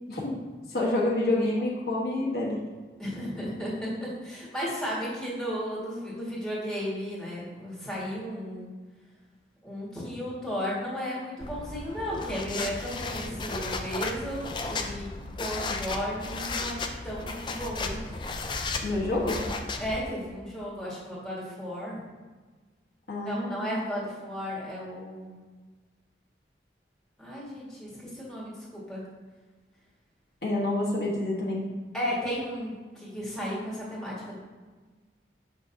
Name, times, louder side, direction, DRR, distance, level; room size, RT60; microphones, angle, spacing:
voice 1, 0.1-0.4 0.7-2.6 18.8-19.4 23.1-23.7 30.4-31.7, left 2 dB, 60° left, -4 dB, 1.3 m, -28 dB
voice 2, 3.0-8.7 9.6-15.1 15.4-16.8 17.0-18.0 19.8-22.0 23.2-25.4 27.2-29.0 31.9-34.4, equal, 5° left, -7 dB, 1.7 m, -34 dB
sound 1, 11.4-20.0, left 3 dB, 25° left, 0.4 m, -34 dB
6.4 x 6.3 x 2.7 m, 1.4 s
head